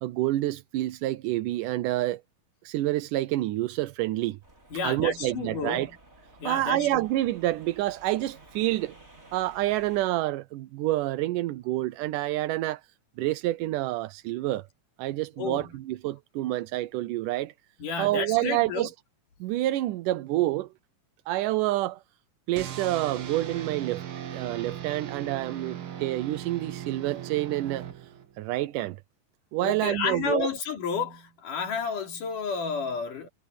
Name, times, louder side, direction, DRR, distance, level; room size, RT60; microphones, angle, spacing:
voice 1, 0.0-2.2 2.6-4.4 4.8-5.9 6.4-8.9 9.3-12.8 13.2-14.6 15.0-17.5 18.0-18.9 19.4-20.7 21.3-22.0 22.5-24.0 24.3-27.9 28.4-29.0 29.5-30.5, right 16 dB, 90° right, 2.3 m, -28 dB
sound 1, 4.4-10.1, right 2 dB, 20° right, 4.3 m, -53 dB
voice 2, 4.7-6.0 6.4-7.1 15.4-15.8 17.8-18.9 29.6-33.3, left 5 dB, 90° left, 4.7 m, -31 dB
sound 2, 22.6-28.4, right 9 dB, 50° right, 1.9 m, -38 dB
omnidirectional pair, 3.6 m